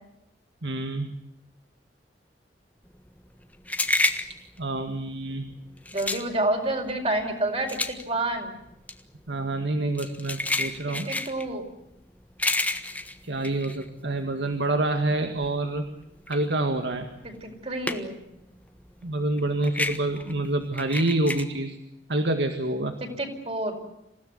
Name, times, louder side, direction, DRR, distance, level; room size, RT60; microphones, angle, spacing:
voice 1, 0.6-1.1 4.6-5.5 9.3-11.1 13.2-15.8 16.3-17.2 19.0-21.8 22.1-23.0, right 2 dB, 85° right, 6 dB, 1.9 m, -27 dB
sound 1, 2.9-14.5 14.9-18.3 18.6-21.4, left 2 dB, 10° left, 1.4 m, -30 dB
voice 2, 5.9-8.6 10.9-11.6 17.2-18.2 23.0-23.8, right 2 dB, 35° right, 3 dB, 5.0 m, -29 dB
27.5 x 16.5 x 9.5 m, 0.87 s
head